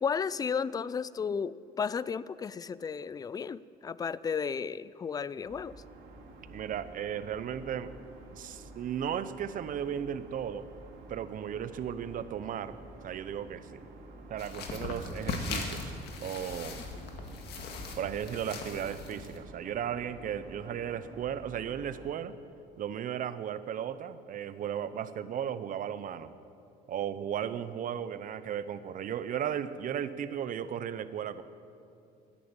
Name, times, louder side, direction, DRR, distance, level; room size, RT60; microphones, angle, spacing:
voice 1, 0.0-5.8, left 6 dB, 20° left, 19 dB, 0.3 m, -33 dB
sound 1, 5.4-22.1, right 2 dB, 75° right, 3.3 m, -50 dB
voice 2, 6.5-7.9 8.3-10.7 11.1-12.8 13.0-13.9 14.3-16.8 18.0-22.4 22.8-26.3 26.9-31.4, right 9 dB, 55° right, 13 dB, 0.8 m, -35 dB
sound 2, 14.4-19.4, left 4 dB, 75° left, 1.9 m, -39 dB
13.0 x 10.0 x 8.9 m, 2.5 s
cardioid pair, 110°, 17 cm